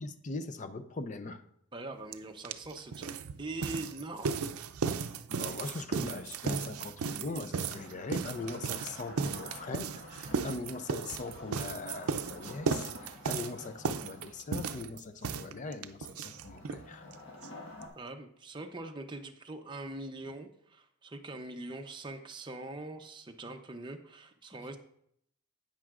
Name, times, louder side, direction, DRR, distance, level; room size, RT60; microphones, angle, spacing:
voice 1, 0.0-1.4 5.3-17.1, left 3 dB, 35° left, 9 dB, 0.4 m, -41 dB
voice 2, 1.7-3.1 3.4-4.5 18.0-24.8, right 2 dB, 20° right, 5 dB, 0.6 m, -42 dB
sound 1, 2.1-2.2 2.4-16.8 17.1-17.2 17.4-17.5 17.8-17.9, right 5 dB, 85° right, 0.5 m, -35 dB
Wood, 7.7-14.5 16.1-17.9, left 1 dB, 60° left, 1.5 m, -50 dB
10.5 x 8.8 x 2.5 m, 0.71 s
head